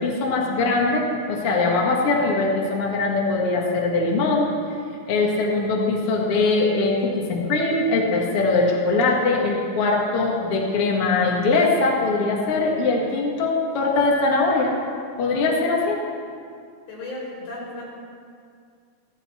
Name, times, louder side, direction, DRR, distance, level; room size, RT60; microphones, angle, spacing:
voice 1, 0.0-4.5 5.1-14.8 15.2-16.0, left 3 dB, 50° left, -1 dB, 2.1 m, -21 dB
voice 2, 16.9-17.9, left 2 dB, 80° left, -6 dB, 6.0 m, -34 dB
15.0 x 14.5 x 4.3 m, 2.3 s
omnidirectional pair, 4.2 m